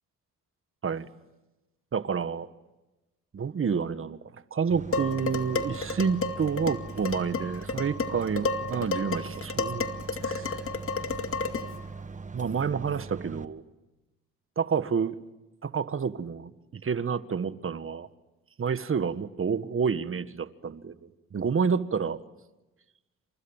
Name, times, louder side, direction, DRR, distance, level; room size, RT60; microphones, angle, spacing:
voice 1, 1.9-2.5 3.3-9.9 10.2-10.6 12.3-13.6 14.6-15.1 15.6-18.1 18.6-20.9 21.3-22.2, right 6 dB, 45° right, 12 dB, 1.6 m, -29 dB
sound 1, 4.7-13.4, right 4 dB, 25° right, 1.5 m, -41 dB
Dishes pots and pans, 4.9-11.8, left 4 dB, 45° left, 2.3 m, -32 dB
29.5 x 27.0 x 7.3 m, 1.1 s
supercardioid pair, 65°, 31 cm